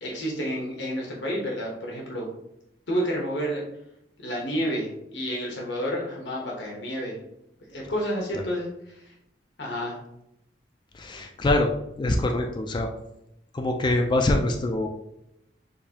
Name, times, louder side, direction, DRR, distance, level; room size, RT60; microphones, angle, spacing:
voice 1, 0.0-2.3 2.9-3.6 4.2-7.2 7.7-9.1 9.6-10.0, equal, 85° left, -2 dB, 1.1 m, -30 dB
voice 2, 10.9-11.7 12.0-12.9 13.5-14.9, left 1 dB, 25° left, 3 dB, 0.4 m, -24 dB
6.6 x 2.6 x 2.8 m, 0.82 s
head